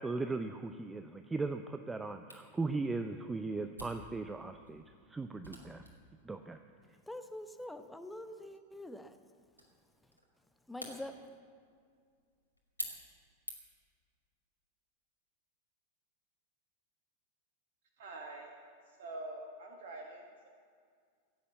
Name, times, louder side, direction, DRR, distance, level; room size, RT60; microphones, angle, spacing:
voice 1, 0.0-4.8 5.1-5.8 6.2-6.6, right 3 dB, 10° right, 8 dB, 0.6 m, -38 dB
Camera, 2.3-13.9, equal, 85° right, 2.3 m, -51 dB
voice 2, 7.0-9.2 10.7-11.2, left 1 dB, 5° left, 8 dB, 1.0 m, -45 dB
voice 3, 18.0-18.5 18.9-20.5, right 2 dB, 55° right, 1 dB, 1.6 m, -46 dB
16.0 x 8.5 x 8.2 m, 2.1 s
figure-of-eight pair, 90°, 0 cm